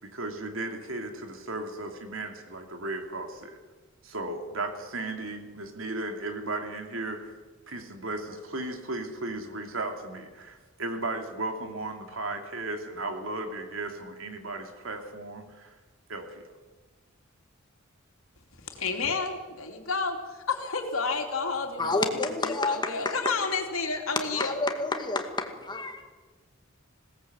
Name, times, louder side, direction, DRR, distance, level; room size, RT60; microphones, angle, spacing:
voice 1, 0.0-3.6 4.0-7.3 7.7-15.8 16.1-16.5, right 2 dB, 70° right, 5 dB, 2.9 m, -35 dB
voice 2, 18.6-24.6, left 4 dB, 75° left, 3 dB, 3.2 m, -31 dB
voice 3, 21.8-23.3 24.3-26.0, left 2 dB, 20° left, 5 dB, 2.2 m, -29 dB
20.5 x 18.0 x 8.1 m, 1.3 s
head